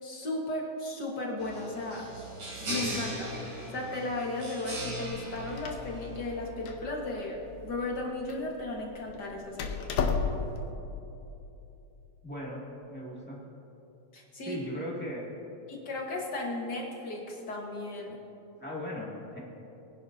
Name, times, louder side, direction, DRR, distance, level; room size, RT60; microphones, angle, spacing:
voice 1, 0.0-2.1 2.6-3.3 3.7-9.8 14.1-14.6 15.7-18.2, left 2 dB, 50° left, -1 dB, 1.4 m, -35 dB
sound 1, 1.4-6.4, right 1 dB, 60° right, 4.4 m, -39 dB
Door, 5.1-10.7, left 5 dB, 70° left, 1.4 m, -35 dB
voice 2, 12.2-12.6 12.9-13.4 14.4-15.2 18.6-19.4, equal, 5° left, -5 dB, 1.4 m, -37 dB
22.0 x 10.5 x 2.7 m, 2.9 s
omnidirectional pair, 3.4 m